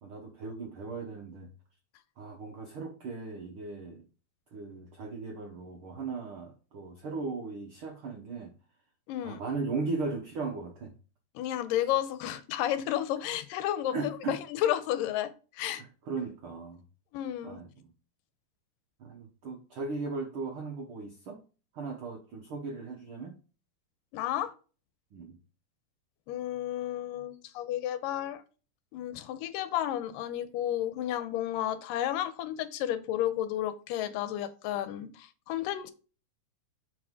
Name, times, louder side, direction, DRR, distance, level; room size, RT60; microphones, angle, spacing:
voice 1, 0.0-1.5 2.2-4.0 4.5-8.5 9.2-10.9 13.9-14.4 16.1-16.8 17.4-17.9 19.0-21.4 21.7-23.3 25.1-25.4, right 4 dB, 70° right, 1.2 m, -37 dB
voice 2, 9.1-9.4 11.4-15.8 17.1-17.6 24.1-24.5 26.3-28.4 28.9-35.9, left 12 dB, 85° left, 2.4 m, -32 dB
6.8 x 5.0 x 3.6 m
omnidirectional pair, 3.9 m